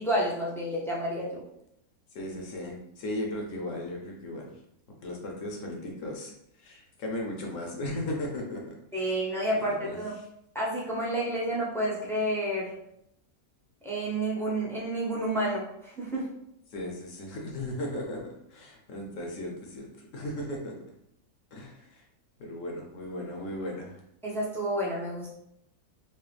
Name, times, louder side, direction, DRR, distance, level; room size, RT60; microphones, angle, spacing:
voice 1, 0.0-1.4 8.9-10.2 10.5-12.7 13.8-16.3 24.2-25.3, right 1 dB, 5° left, -6 dB, 0.5 m, -30 dB
voice 2, 2.1-4.6 5.0-6.3 6.6-9.1 9.5-10.2 16.7-20.7 21.5-22.0 22.4-24.0, left 1 dB, 60° left, 0 dB, 1.0 m, -36 dB
4.5 x 2.1 x 3.3 m, 0.78 s
omnidirectional pair, 1.6 m